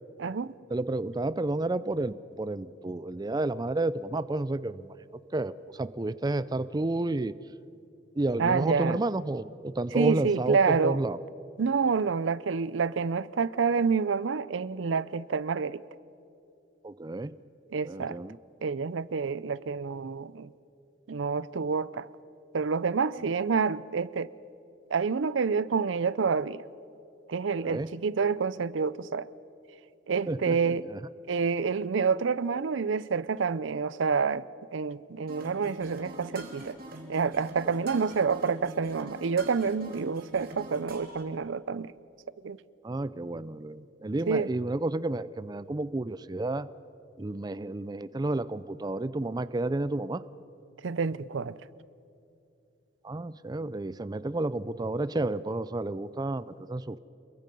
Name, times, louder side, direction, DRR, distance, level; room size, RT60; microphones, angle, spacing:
voice 1, 0.2-0.5 8.4-9.0 9.9-11.0 11.6-15.8 17.7-18.2 18.6-20.5 21.1-22.1 22.5-24.3 24.9-26.6 27.3-29.3 30.1-30.9 31.3-34.4 34.7-36.8 37.1-41.9 42.4-42.6 44.3-44.5 50.8-51.5, right 5 dB, 85° right, 18 dB, 0.5 m, -28 dB
voice 2, 0.7-5.0 5.3-7.3 8.2-11.2 16.8-17.4 17.8-18.4 27.6-27.9 30.3-31.0 42.8-46.7 47.2-50.2 53.0-57.0, right 2 dB, 20° right, 16 dB, 0.4 m, -31 dB
sound 1, 35.3-41.2, right 1 dB, 50° right, 3.0 m, -44 dB
28.5 x 22.0 x 5.3 m, 2.7 s
head